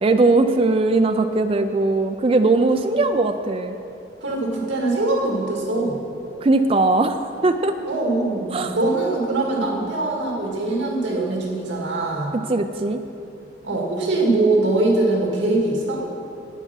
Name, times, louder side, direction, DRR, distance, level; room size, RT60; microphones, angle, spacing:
voice 1, 0.0-3.8 6.4-7.2 7.4-7.7 8.5-8.8 12.5-13.0, right 2 dB, 30° right, 7 dB, 0.4 m, -19 dB
voice 2, 4.2-6.0 7.9-12.3 13.6-16.0, right 2 dB, 75° right, -1 dB, 2.0 m, -22 dB
11.0 x 9.1 x 5.7 m, 2.9 s
head